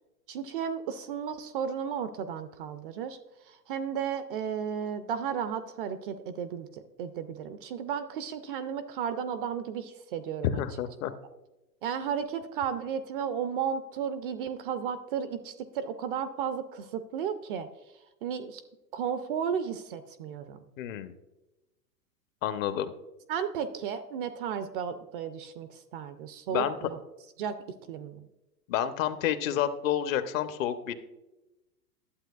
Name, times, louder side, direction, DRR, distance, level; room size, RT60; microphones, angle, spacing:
voice 1, 0.3-3.2 3.5-10.6 11.8-17.7 18.2-18.6 18.9-20.6 23.3-27.0 27.4-27.5 27.9-28.2, right 7 dB, 35° right, 11 dB, 0.4 m, -34 dB
voice 2, 10.4-11.1 20.8-21.1 22.4-22.9 26.5-26.7 28.7-30.9, left 10 dB, 55° left, 11 dB, 0.8 m, -29 dB
11.5 x 7.6 x 2.3 m, 0.99 s
hypercardioid pair, 110°, 49 cm